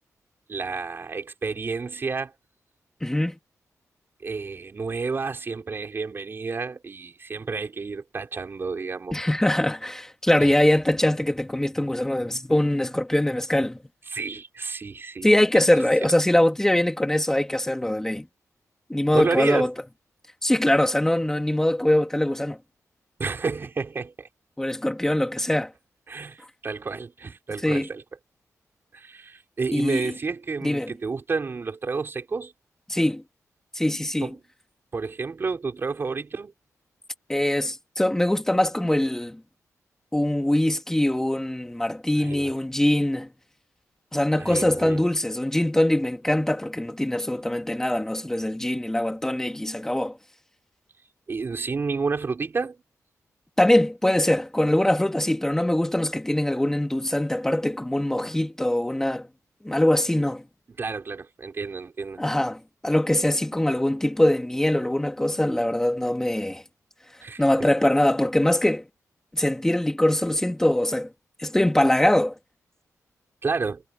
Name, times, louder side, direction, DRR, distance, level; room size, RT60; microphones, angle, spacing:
voice 1, 0.5-2.3 4.2-9.3 10.4-10.5 14.1-15.3 16.0-16.1 19.1-19.7 23.2-24.3 26.1-28.0 28.9-32.5 34.2-34.4 34.9-36.5 42.2-42.5 44.4-45.1 51.3-52.8 60.8-62.2 67.2-67.4 73.4-73.8, right 4 dB, 40° right, 5.2 m, -30 dB
voice 2, 3.0-3.3 9.1-13.8 15.2-18.3 18.9-19.7 20.4-22.6 24.6-25.7 27.6-27.9 29.7-30.1 30.6-30.9 32.9-33.2 33.7-34.3 37.3-39.4 40.1-43.3 44.1-50.2 53.6-59.3 59.6-60.4 62.2-66.6 67.4-68.9 69.3-71.1 71.4-72.3, left 1 dB, 10° left, 3.0 m, -22 dB
wide cardioid pair, 120°, 6 cm